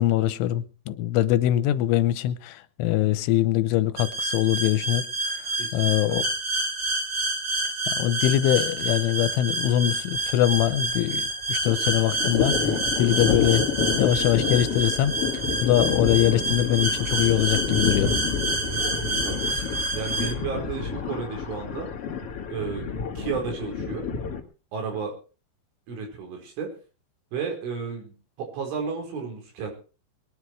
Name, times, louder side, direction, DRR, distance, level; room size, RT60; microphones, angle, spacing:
voice 1, 0.0-5.4 5.7-6.3 7.9-13.6 14.0-18.1, left 12 dB, 90° left, 3.3 m, -23 dB
sound 1, 4.0-20.3, right 2 dB, 35° right, 2.4 m, -28 dB
voice 2, 5.6-5.9 18.7-19.7 19.9-21.9 22.5-22.8 23.2-24.1 24.7-25.2 25.9-26.7 27.3-29.7, right 5 dB, 85° right, 7.1 m, -33 dB
Thunder, 8.8-9.0 9.3-9.4 9.6-11.2 11.4-24.4, left 6 dB, 40° left, 2.3 m, -29 dB
22.0 x 10.5 x 4.7 m
omnidirectional pair, 5.4 m